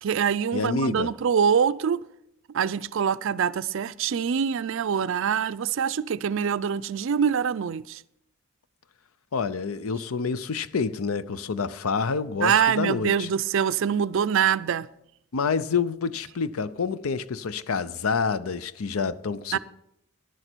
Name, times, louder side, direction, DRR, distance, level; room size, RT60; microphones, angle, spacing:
voice 1, 0.0-2.0 2.5-8.0 12.4-14.9 19.5-19.6, right 7 dB, 65° right, 0.4 m, -24 dB
voice 2, 0.5-1.1 9.3-13.3 15.3-19.6, left 5 dB, 85° left, 0.6 m, -28 dB
11.5 x 11.0 x 4.5 m
head